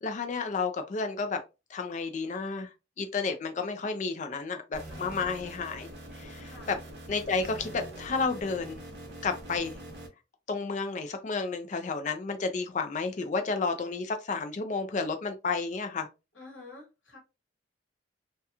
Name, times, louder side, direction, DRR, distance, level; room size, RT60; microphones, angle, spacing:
voice 1, 0.0-1.4 1.7-2.7 3.0-5.9 6.1-6.8 7.1-8.8 9.2-9.8 10.5-16.1, left 4 dB, 40° left, 0.4 m, -31 dB
sound 1, 4.7-10.1, right 1 dB, 60° right, 0.7 m, -44 dB
voice 2, 4.9-5.3 6.4-6.7 16.3-17.2, left 3 dB, 90° left, 1.3 m, -49 dB
2.8 x 2.2 x 2.3 m
head